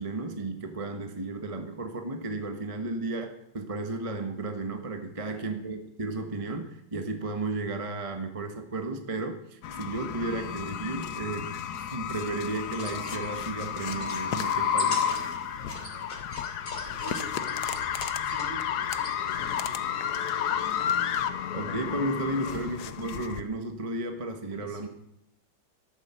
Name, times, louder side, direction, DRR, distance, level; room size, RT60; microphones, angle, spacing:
voice 1, 0.0-11.5 11.8-15.0 21.5-24.9, right 2 dB, 20° right, 5 dB, 1.0 m, -33 dB
voice 2, 5.2-5.6 14.7-16.2 16.6-20.8 22.4-22.6 24.5-24.9, right 2 dB, 55° right, 2 dB, 3.3 m, -48 dB
sound 1, 9.6-23.4, left 8 dB, 60° left, 1.1 m, -31 dB
sound 2, 12.6-19.2, left 1 dB, 25° left, 3.2 m, -42 dB
13.5 x 11.0 x 7.0 m, 0.79 s
omnidirectional pair, 2.4 m